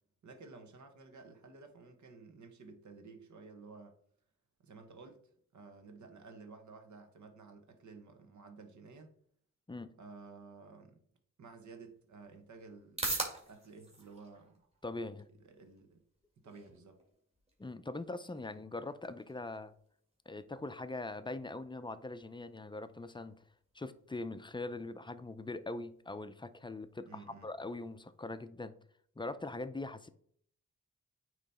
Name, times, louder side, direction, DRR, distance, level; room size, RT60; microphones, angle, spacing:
voice 1, 0.2-4.0 4.6-5.2 5.5-9.1 10.0-11.0 11.4-14.5 15.4-16.0 16.4-17.0 27.1-27.5, right 4 dB, 70° right, 1.3 m, -53 dB
sound 1, 11.5-28.5, right 2 dB, 20° right, 2.0 m, -48 dB
voice 2, 14.8-15.3 17.6-19.7 20.3-23.4 23.7-28.7 29.2-30.1, left 2 dB, 15° left, 0.4 m, -42 dB
8.9 x 3.1 x 4.1 m
wide cardioid pair, 95°, 30 cm